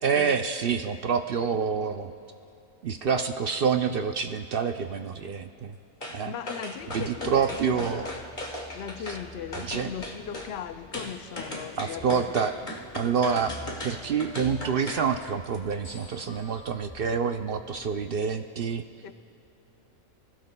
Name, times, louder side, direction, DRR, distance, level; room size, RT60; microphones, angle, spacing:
voice 1, 0.0-2.1 2.8-5.7 6.1-6.3 6.9-8.1 9.6-9.9 11.8-12.5 12.9-13.6 13.8-18.8, right 6 dB, 60° right, 0.6 m, -27 dB
sound 1, 6.0-6.2 6.5-9.2 9.5-10.5 10.9-15.1 15.4-15.6, left 1 dB, 35° left, 1.6 m, -37 dB
voice 2, 6.2-8.1 8.7-12.5 19.0-19.1, left 8 dB, 60° left, 0.8 m, -38 dB
sound 2, 6.8-18.0, right 1 dB, 5° left, 2.4 m, -48 dB
29.5 x 16.5 x 2.2 m
omnidirectional pair, 1.4 m